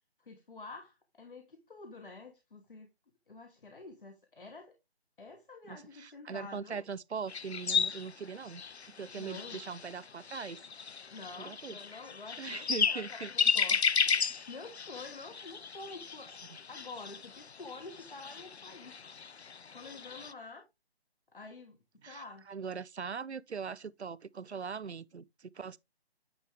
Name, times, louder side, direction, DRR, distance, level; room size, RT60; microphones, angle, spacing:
voice 1, 0.2-2.9 3.3-4.8 5.2-6.8 9.2-9.6 11.1-14.0 14.2-16.4 16.7-19.0 19.7-20.7 21.3-21.8 22.0-22.5, left 3 dB, 55° left, 1.2 m, -48 dB
voice 2, 5.7-8.6 8.9-10.6 11.4-11.8 12.4-13.3 13.7-13.8 22.0-25.8, right 6 dB, 90° right, 0.5 m, -41 dB
sound 1, 7.3-20.3, left 6 dB, 85° left, 0.6 m, -34 dB
9.3 x 3.5 x 3.4 m
figure-of-eight pair, 150°, 32 cm